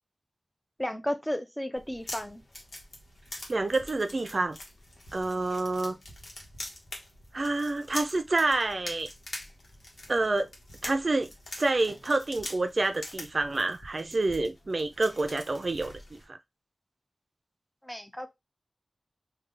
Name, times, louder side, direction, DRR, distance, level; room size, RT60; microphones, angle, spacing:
voice 1, 0.8-2.4 17.8-18.3, equal, 10° left, 0.6 m, -33 dB
sound 1, 1.7-16.2, left 1 dB, 85° left, 1.1 m, -44 dB
voice 2, 3.5-4.6 5.1-6.0 7.3-9.1 10.1-10.5 10.8-11.3 11.6-16.2, right 2 dB, 65° right, 0.5 m, -28 dB
3.3 x 2.3 x 3.8 m
wide cardioid pair, 50°, 0 cm